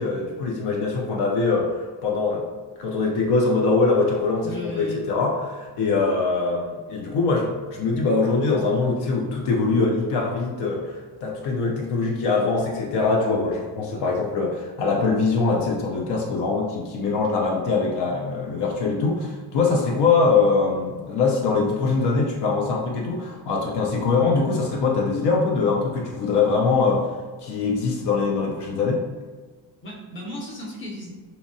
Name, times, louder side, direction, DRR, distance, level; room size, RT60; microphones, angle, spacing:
voice 1, 0.0-2.4 2.8-27.1 27.4-29.0, left 4 dB, 70° left, -2 dB, 0.5 m, -23 dB
voice 2, 4.4-5.0 29.8-31.1, equal, 30° left, -4 dB, 0.7 m, -34 dB
2.8 x 2.1 x 2.5 m, 1.4 s
cardioid pair, 135°, 42 cm